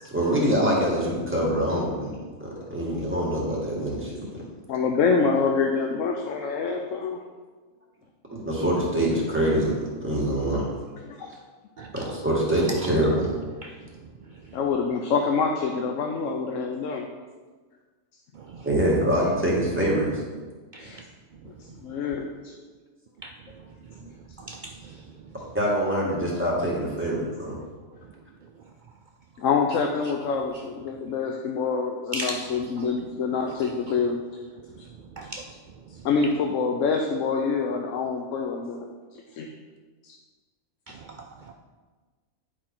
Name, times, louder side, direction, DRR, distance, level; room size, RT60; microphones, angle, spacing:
voice 1, 0.1-2.1 2.4-4.2 8.3-10.7 11.9-13.3 18.6-20.2 25.5-27.6, right 1 dB, 10° right, -6 dB, 1.9 m, -24 dB
voice 2, 4.7-7.2 11.0-11.3 14.5-17.1 20.8-21.0 21.4-22.3 24.0-24.1 29.4-34.2 36.0-38.9 39.3-39.5 40.0-40.2, left 5 dB, 70° left, 3 dB, 1.0 m, -26 dB
voice 3, 11.8-12.1 13.6-13.7 18.4-18.7 20.7-20.9 23.2-23.3 24.4-25.0 32.1-32.4 32.8-32.9 35.2-35.4 40.9-41.1 41.5-41.6, right 1 dB, 75° right, 2 dB, 0.4 m, -37 dB
9.8 x 4.7 x 4.4 m, 1.4 s
omnidirectional pair, 1.4 m